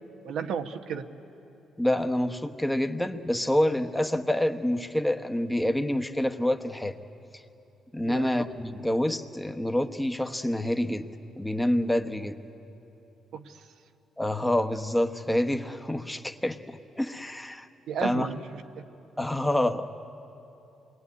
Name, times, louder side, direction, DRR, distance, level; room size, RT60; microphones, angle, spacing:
voice 1, 0.2-1.1 8.0-8.5 13.3-13.6 17.9-18.6, right 7 dB, 75° right, 6 dB, 1.2 m, -34 dB
voice 2, 1.8-7.0 7.9-11.1 11.4-12.4 14.2-17.7 18.0-18.3 19.2-19.9, left 1 dB, 5° left, 6 dB, 1.1 m, -27 dB
27.5 x 21.0 x 9.7 m, 2.9 s
cardioid pair, 90°, 0 cm